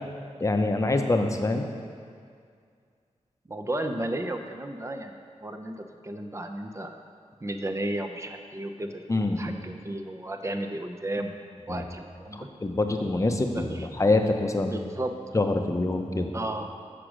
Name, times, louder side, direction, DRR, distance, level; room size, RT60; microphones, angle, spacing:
voice 1, 0.4-1.7 9.1-9.4 11.7-11.8 12.3-14.7 15.3-16.3, left 2 dB, 25° left, 4 dB, 0.7 m, -25 dB
voice 2, 3.5-5.1 5.4-7.0 7.4-9.0 9.4-11.3 11.7-12.5 13.5-13.9 14.7-15.1 16.3-16.7, right 1 dB, 25° right, 5 dB, 0.6 m, -33 dB
6.7 x 4.9 x 6.2 m, 2.2 s
wide cardioid pair, 85°, 12 cm